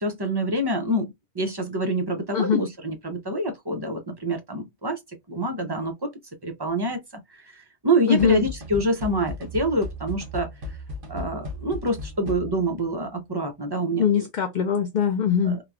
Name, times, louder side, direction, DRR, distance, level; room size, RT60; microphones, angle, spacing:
voice 1, 0.0-5.0 5.3-6.1 6.4-7.0 7.3-10.8 11.1-14.0 15.5-15.6, right 1 dB, 30° right, 0.5 m, -26 dB
voice 2, 8.1-8.5 14.0-15.6, left 8 dB, 60° left, 0.5 m, -22 dB
sound 1, 8.2-12.8, left 1 dB, 50° right, 1.0 m, -36 dB
2.9 x 2.2 x 2.4 m
omnidirectional pair, 1.2 m